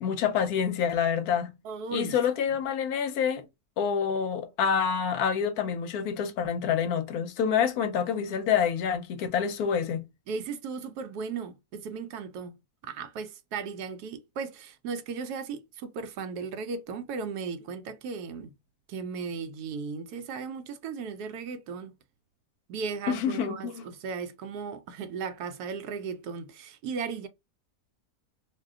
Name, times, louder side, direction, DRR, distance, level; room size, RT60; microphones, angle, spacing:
voice 1, 0.0-1.5 1.9-3.4 3.8-10.0 23.1-23.9, left 7 dB, 70° left, 1.0 m, -27 dB
voice 2, 1.6-2.2 10.3-12.6 12.8-18.5 18.9-21.9 22.7-27.3, right 5 dB, 75° right, 1.1 m, -36 dB
2.7 x 2.1 x 3.5 m
omnidirectional pair, 1.7 m